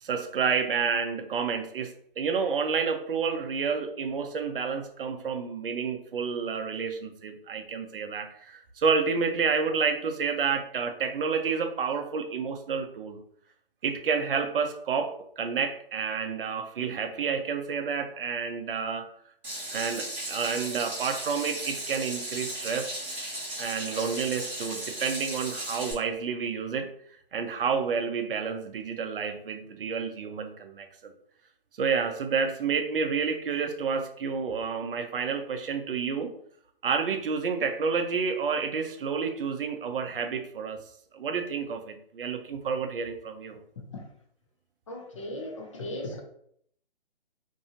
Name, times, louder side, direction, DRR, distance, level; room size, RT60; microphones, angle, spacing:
voice 1, 0.0-13.2 13.8-19.1 19.7-22.9 23.6-26.9 27.3-31.1 31.8-36.3 36.8-40.8 41.1-43.6, right 5 dB, 60° right, 6 dB, 0.5 m, -29 dB
Water tap faucet / Sink (filling or washing), 19.4-25.9, right 1 dB, 5° right, 0.6 m, -36 dB
voice 2, 44.9-46.2, left 1 dB, 30° left, 2 dB, 0.5 m, -37 dB
2.6 x 2.6 x 2.8 m, 0.66 s
hypercardioid pair, 150°, 31 cm